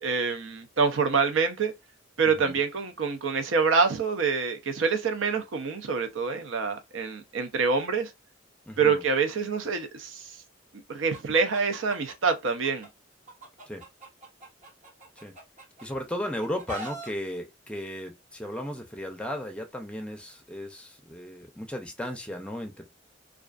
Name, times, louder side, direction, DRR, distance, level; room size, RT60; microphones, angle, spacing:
voice 1, 0.0-1.7 2.2-8.1 8.8-10.4 10.7-12.9, right 5 dB, 85° right, 0.5 m, -26 dB
voice 2, 8.7-9.0 13.7-13.9 15.2-15.3 15.8-22.8, equal, 5° left, 0.5 m, -35 dB
Chicken rooster, 11.1-12.9 13.3-15.9 16.2-17.1, right 1 dB, 40° right, 0.9 m, -42 dB
2.4 x 2.3 x 2.3 m
head